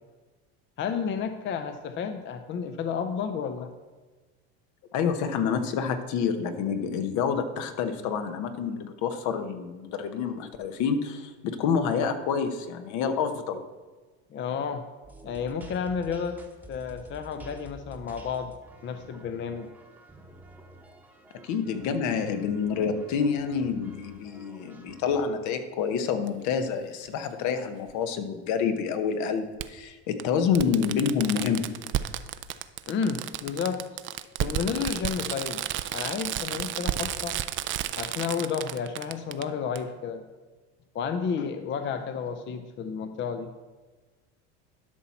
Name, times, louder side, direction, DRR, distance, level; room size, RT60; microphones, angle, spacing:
voice 1, 0.8-3.7 14.3-14.8 15.2-16.4 16.7-18.5 18.8-19.7 32.9-33.8 34.4-35.6 35.9-37.4 38.0-40.2 40.9-43.5, left 6 dB, 35° left, 8 dB, 0.6 m, -31 dB
voice 2, 4.9-13.7 21.4-31.9, left 6 dB, 65° left, 8 dB, 1.0 m, -28 dB
sound 1, 15.0-25.3, right 2 dB, 5° right, 1.0 m, -50 dB
Fireworks, 26.3-26.4 27.9-28.0 29.6-29.7 30.2-30.3 30.6-39.4 39.8-39.9, right 12 dB, 40° right, 0.5 m, -32 dB
12.0 x 5.7 x 4.3 m, 1.3 s
supercardioid pair, 110°, 32 cm